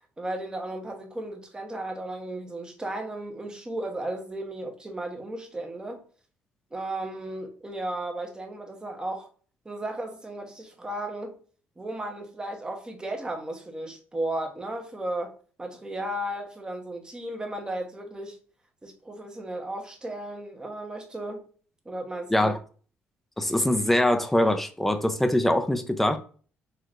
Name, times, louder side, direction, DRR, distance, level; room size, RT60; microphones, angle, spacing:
voice 1, 0.2-6.0 6.7-9.3 9.6-11.3 11.8-15.3 15.6-18.4 18.8-21.4 21.8-22.5, right 1 dB, 15° right, 1.0 m, -34 dB
voice 2, 23.4-26.2, left 1 dB, 5° left, 0.6 m, -23 dB
4.6 x 3.2 x 2.5 m
cardioid pair, 90°, 5 cm